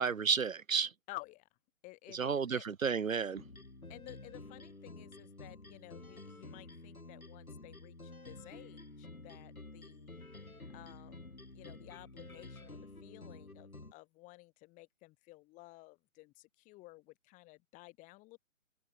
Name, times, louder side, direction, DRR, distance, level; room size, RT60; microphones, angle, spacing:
voice 1, 0.0-0.9 2.2-3.4, right 6 dB, 70° right, 1.0 m, -31 dB
voice 2, 1.1-1.6 1.8-2.6 3.9-18.4, left 21 dB, 20° left, 5.9 m, -54 dB
sound 1, 3.4-13.9, left 2 dB, 90° left, 4.5 m, -51 dB
open air
figure-of-eight pair, 140°, 41 cm